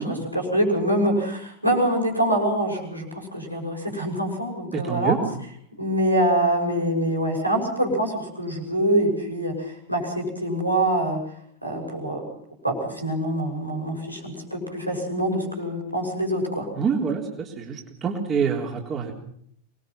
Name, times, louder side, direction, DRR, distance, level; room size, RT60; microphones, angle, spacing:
voice 1, 0.0-5.2 5.8-11.2 11.6-12.2 12.6-16.7, right 1 dB, 90° right, -1 dB, 6.4 m, -25 dB
voice 2, 4.7-5.2 16.7-19.1, right 6 dB, 25° right, 0 dB, 3.7 m, -26 dB
25.5 x 21.0 x 5.8 m, 0.64 s
figure-of-eight pair, 90°, 0 cm